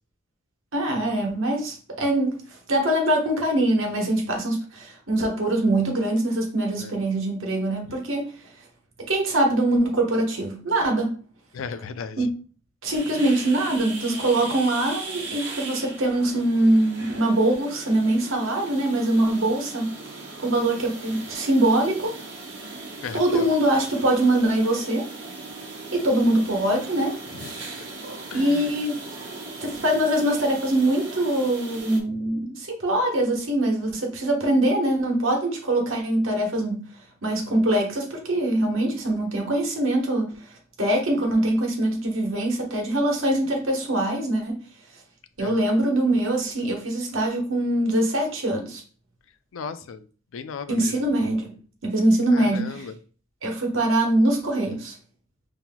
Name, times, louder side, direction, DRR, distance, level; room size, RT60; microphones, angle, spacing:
voice 1, 0.7-8.4 9.1-11.1 12.2-12.3 12.8-19.9 20.4-22.2 23.1-25.1 25.9-27.2 27.5-27.7 28.3-29.1 29.6-36.9 37.2-44.6 45.4-48.8 50.7-51.6 51.8-52.9 53.4-54.9, right 1 dB, 75° right, 1.2 m, -23 dB
voice 2, 11.5-12.3 13.2-13.3 23.0-23.5 27.4-27.5 28.3-28.7 45.4-45.6 49.5-50.1 50.3-51.1 52.3-53.0, left 6 dB, 80° left, 0.4 m, -36 dB
sound 1, 12.8-32.0, right 3 dB, 55° right, 1.1 m, -38 dB
5.6 x 2.9 x 2.2 m
head